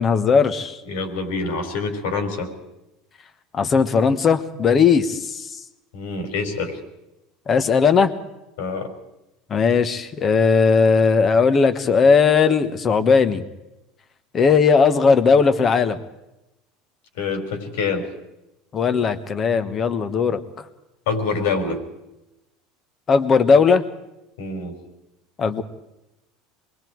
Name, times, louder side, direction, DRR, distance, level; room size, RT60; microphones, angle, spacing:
voice 1, 0.0-0.8 3.5-5.5 7.5-8.1 9.5-13.4 14.3-16.0 18.7-20.4 23.1-23.8 25.4-25.6, left 5 dB, 25° left, 10 dB, 1.3 m, -17 dB
voice 2, 0.8-2.5 5.9-6.8 8.6-8.9 17.2-18.1 21.1-21.8 24.4-24.8, left 4 dB, 90° left, 4 dB, 5.2 m, -26 dB
27.5 x 22.0 x 4.7 m, 0.92 s
cardioid pair, 165°, 0 cm